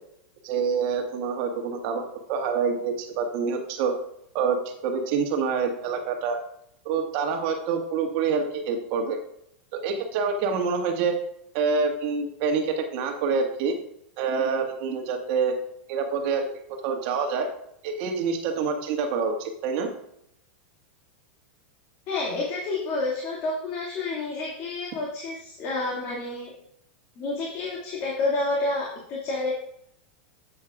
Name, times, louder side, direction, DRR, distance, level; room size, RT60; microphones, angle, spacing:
voice 1, 0.4-2.0 2.3-3.9 4.3-6.4 6.8-9.2 9.7-11.2 11.5-13.7 14.2-15.5 15.9-16.5 16.8-17.5 17.8-19.9, right 5 dB, 55° right, 3 dB, 1.7 m, -26 dB
voice 2, 22.1-26.5 27.2-29.5, left 2 dB, 45° left, -4 dB, 2.2 m, -29 dB
10.5 x 8.6 x 2.4 m, 0.73 s
supercardioid pair, 130°, 6 cm